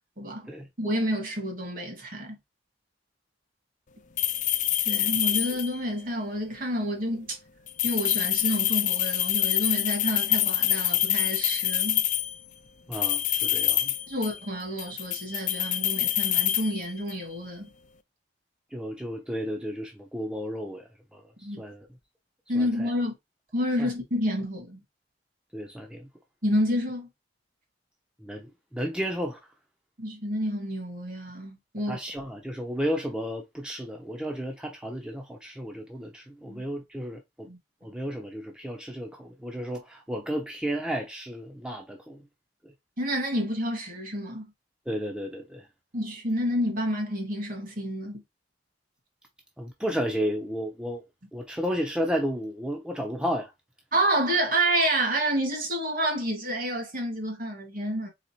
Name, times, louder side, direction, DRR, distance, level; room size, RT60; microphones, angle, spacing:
voice 1, 0.2-0.5 0.8-2.4 4.9-7.4 7.8-12.0 14.1-17.7 21.4-21.6 22.5-23.1 23.5-24.8 26.4-27.1 30.0-32.0 36.5-36.6 37.5-37.6 43.0-44.5 45.9-48.2 53.9-58.1, equal, 50° right, 1.9 m, -29 dB
sound 1, 4.2-5.9 7.7-12.4 12.9-14.5 14.8-17.3, left 12 dB, 45° left, 0.4 m, -26 dB
voice 2, 12.9-13.9 18.7-21.2 21.6-21.9 22.5-22.9 23.8-23.9 25.5-26.1 28.2-28.5 28.7-29.4 31.9-37.5 37.8-42.2 42.6-42.7 44.9-45.7 49.6-51.0 51.3-53.5, equal, 5° right, 0.6 m, -33 dB
4.0 x 4.0 x 2.9 m
head